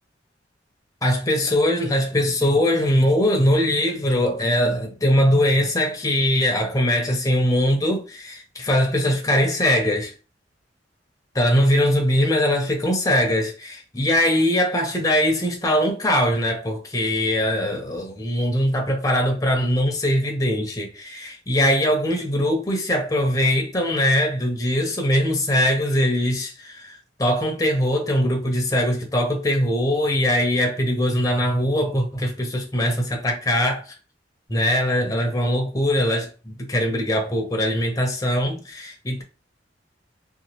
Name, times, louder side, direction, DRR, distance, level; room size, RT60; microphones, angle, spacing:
voice 1, 1.0-10.1 11.3-33.9 34.5-39.2, equal, 20° left, 0.6 m, -21 dB
2.8 x 2.3 x 2.9 m
head